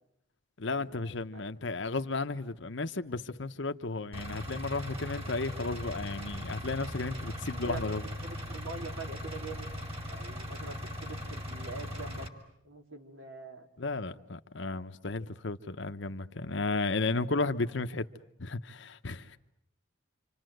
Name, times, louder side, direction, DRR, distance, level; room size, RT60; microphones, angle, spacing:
voice 1, 0.6-8.0 13.8-18.1 18.4-19.4, left 3 dB, 65° left, 1.0 m, -34 dB
Engine, 4.1-12.3, left 1 dB, 30° right, 2.6 m, -39 dB
voice 2, 8.2-9.8 10.1-12.3 12.6-13.7, right 3 dB, 75° right, 2.8 m, -44 dB
28.0 x 26.5 x 7.9 m
head